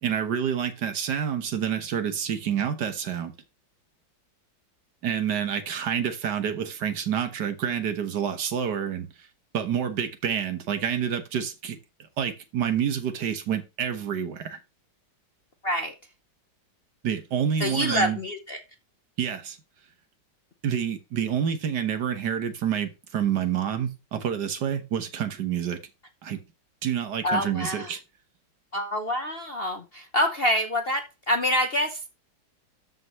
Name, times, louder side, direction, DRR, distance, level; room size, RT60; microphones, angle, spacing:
voice 1, 0.0-3.3 5.0-9.3 9.5-14.6 17.0-18.2 19.2-19.6 20.6-25.8 26.2-26.4 26.8-28.0, right 8 dB, 65° right, 1.7 m, -28 dB
voice 2, 15.6-16.0 17.6-18.6 27.2-27.9 28.7-32.0, equal, 50° left, 0.7 m, -26 dB
13.5 x 5.3 x 3.1 m
omnidirectional pair, 2.1 m